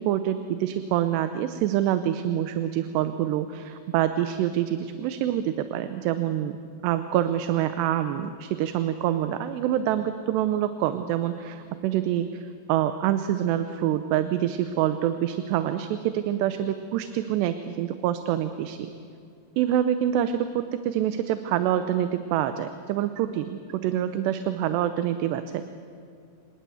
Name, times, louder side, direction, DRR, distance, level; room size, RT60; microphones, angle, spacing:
voice 1, 0.0-6.6 6.8-18.9 19.6-25.7, right 11 dB, 80° right, 10 dB, 2.9 m, -26 dB
27.0 x 19.5 x 7.8 m, 2.5 s
omnidirectional pair, 5.0 m